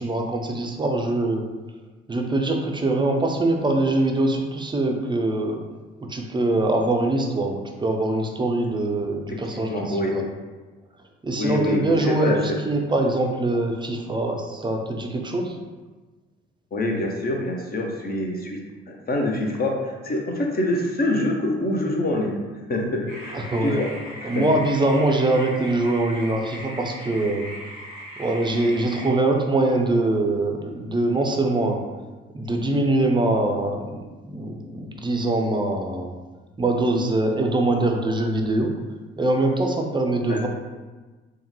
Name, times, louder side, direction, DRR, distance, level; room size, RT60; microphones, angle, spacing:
voice 1, 0.0-1.5 2.1-5.6 6.1-10.3 11.2-15.6 23.3-23.8 24.2-27.5 28.2-31.8 32.3-33.8 34.2-36.2 36.6-38.7 39.2-40.5, right 2 dB, 15° right, 2 dB, 0.5 m, -23 dB
voice 2, 9.3-10.2 11.4-12.4 16.7-18.6 18.9-22.4 22.7-23.9 24.2-24.4 40.3-40.5, left 1 dB, 30° left, 1 dB, 0.7 m, -25 dB
sound 1, 23.1-29.1, equal, 70° left, 1.5 m, -38 dB
3.5 x 2.2 x 3.0 m, 1.3 s
hypercardioid pair, 45°, 30 cm